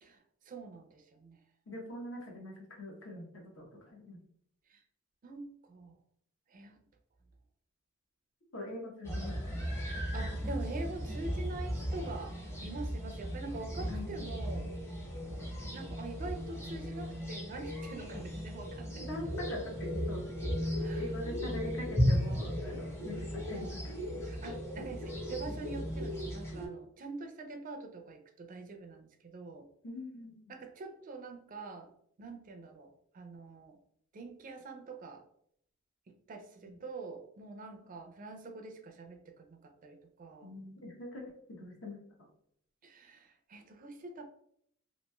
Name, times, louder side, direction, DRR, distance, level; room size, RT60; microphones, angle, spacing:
voice 1, 0.0-1.4 4.7-4.8 5.2-5.9 6.5-6.8 9.9-12.3 12.6-14.7 15.7-19.4 20.8-21.2 24.2-29.7 30.5-31.9 32.2-33.8 34.1-35.2 36.3-40.5 42.8-44.2, right 3 dB, 40° right, 5 dB, 0.4 m, -45 dB
voice 2, 1.7-4.2 8.5-9.3 13.9-14.2 15.6-15.8 19.1-20.2 20.6-23.9 29.8-30.4 36.7-36.8 40.4-41.2 41.5-42.0, left 1 dB, 70° left, 0 dB, 0.9 m, -43 dB
sound 1, 9.1-26.7, equal, 15° left, 0.6 m, -36 dB
2.9 x 2.7 x 2.2 m, 0.69 s
head